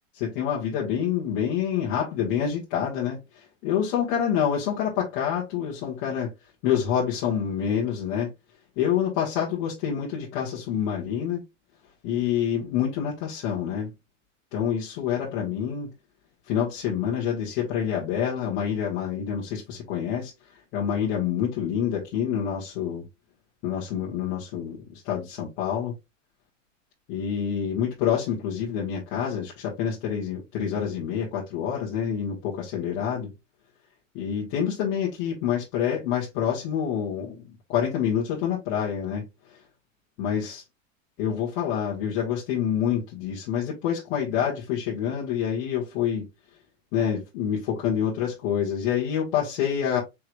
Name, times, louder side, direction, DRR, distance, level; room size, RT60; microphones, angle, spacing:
voice 1, 0.1-6.3 6.6-8.3 8.8-11.4 12.0-13.9 14.5-15.9 16.5-20.3 20.7-23.0 23.6-25.9 27.1-33.3 34.1-37.4 37.7-39.2 40.2-40.6 41.2-46.2 46.9-50.0, left 8 dB, 55° left, 1.7 m, -27 dB
4.8 x 3.7 x 2.3 m
hypercardioid pair, 115°, 39 cm